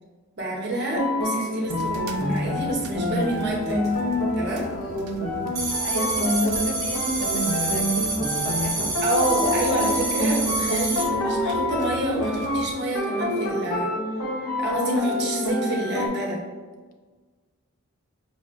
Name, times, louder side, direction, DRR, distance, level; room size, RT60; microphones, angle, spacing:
voice 1, 0.4-3.8 4.3-4.6 9.0-13.9 14.6-16.4, right 1 dB, 50° right, -2 dB, 0.7 m, -28 dB
sound 1, 0.7-16.1, left 1 dB, 85° left, 0.6 m, -27 dB
sound 2, 1.6-12.8, right 2 dB, 85° right, 0.4 m, -42 dB
voice 2, 4.6-9.0 16.7-17.0, left 2 dB, 40° left, 3 dB, 0.3 m, -37 dB
sound 3, 5.6-11.1, right 3 dB, 15° right, 0.6 m, -28 dB
5.3 x 2.1 x 2.4 m, 1.4 s
head